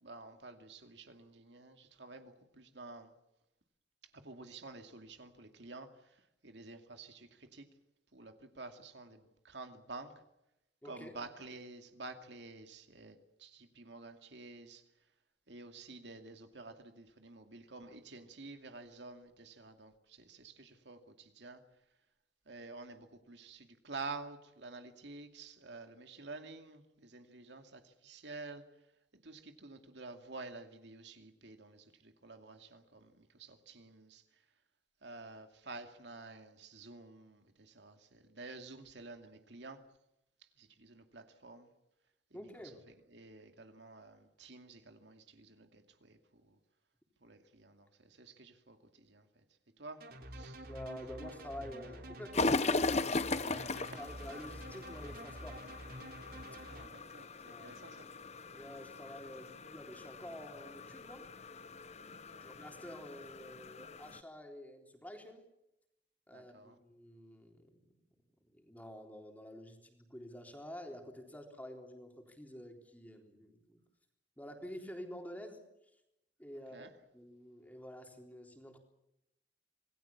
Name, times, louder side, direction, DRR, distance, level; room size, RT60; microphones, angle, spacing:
voice 1, 0.0-3.1 4.1-5.9 6.4-7.7 8.1-10.1 10.8-14.8 15.5-21.6 22.5-28.6 29.2-34.2 35.0-39.8 40.6-41.7 42.4-42.5 43.1-46.6 47.2-49.4 49.8-50.0 50.3-50.7 53.5-53.7 56.6-58.1 62.1-62.5 66.3-66.8 76.7-76.9, right 3 dB, 70° right, 2.5 m, -50 dB
voice 2, 10.8-11.2 42.3-42.8 50.7-55.6 57.5-57.8 58.5-61.3 62.4-65.4 66.3-67.9 68.5-73.8 74.4-75.6 76.4-78.8, equal, 10° left, 3.8 m, -49 dB
sound 1, 50.0-56.9, right 1 dB, 55° right, 3.3 m, -48 dB
sound 2, 52.3-64.2, left 3 dB, 35° left, 0.9 m, -39 dB
27.0 x 20.0 x 7.2 m
head